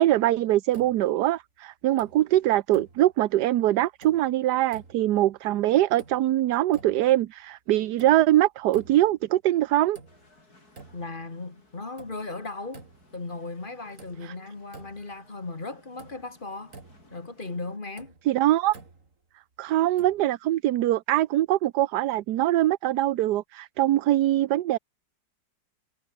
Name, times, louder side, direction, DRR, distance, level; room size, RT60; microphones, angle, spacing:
voice 1, 0.0-10.0 14.2-14.3 18.3-18.8 19.6-24.8, right 14 dB, 75° right, 1.3 m, -23 dB
Castle tower clock stereo close, 0.7-1.4 1.8-2.4 2.7-3.4 3.8-4.4 4.7-5.3 5.7-6.4 6.7-7.3 7.7-8.4 8.7-9.3 9.7-10.4 10.7-11.3 11.7-13.2 13.6-13.7 14.0-15.3 15.5-15.6 16.0-17.2 17.7-19.2 20.0-20.4, right 3 dB, 45° right, 3.4 m, -50 dB
sound 1, 10.1-17.8, left 2 dB, 60° left, 6.8 m, -59 dB
voice 2, 10.9-12.9 13.1-16.7 17.1-18.1, left 3 dB, 30° left, 2.1 m, -37 dB
omnidirectional pair, 1.8 m